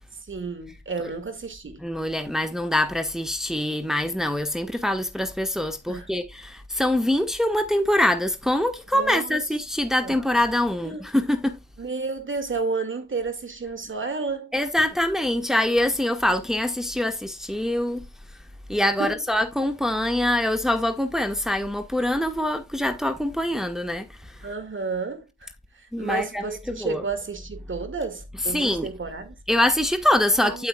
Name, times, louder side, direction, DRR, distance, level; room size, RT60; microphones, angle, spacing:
voice 1, 0.3-1.8 5.9-6.1 8.9-9.4 10.0-10.2 10.8-11.0 11.8-14.5 19.0-19.2 24.4-29.4 30.3-30.7, right 4 dB, 40° right, 2.0 m, -31 dB
voice 2, 1.8-11.6 14.5-18.1 18.7-24.4 25.9-27.0 28.5-28.9 29.5-30.7, left 1 dB, ahead, 1.3 m, -24 dB
8.5 x 8.1 x 2.3 m
hypercardioid pair, 40°, 30 cm